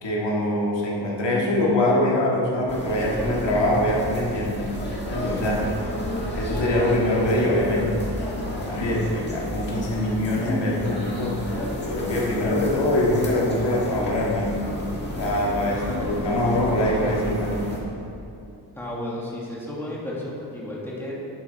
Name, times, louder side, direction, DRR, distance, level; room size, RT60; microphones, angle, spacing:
voice 1, 0.0-4.6 5.1-5.7 6.3-7.9 8.5-11.4 11.8-14.5 15.2-17.6, left 1 dB, 90° left, -4 dB, 1.8 m, -23 dB
sound 1, 2.7-17.8, left 1 dB, 25° left, 1.7 m, -31 dB
voice 2, 5.3-5.9 15.7-16.0 18.7-21.1, left 1 dB, 5° left, -5 dB, 1.6 m, -33 dB
11.0 x 6.7 x 4.1 m, 2.7 s
wide cardioid pair, 150°, 42 cm